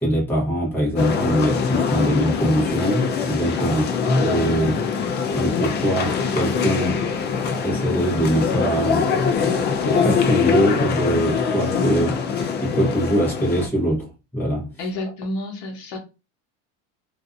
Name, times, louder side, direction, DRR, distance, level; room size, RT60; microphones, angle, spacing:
voice 1, 0.0-4.8 5.3-7.1 7.6-12.2 12.6-14.1 14.3-14.7, right 1 dB, 5° left, 0.9 m, -23 dB
sound 1, 1.0-13.7, left 6 dB, 30° left, 0.4 m, -23 dB
voice 2, 3.6-4.0 14.8-16.0, left 1 dB, 65° left, 0.9 m, -30 dB
2.5 x 2.4 x 2.4 m
supercardioid pair, 125°, 38 cm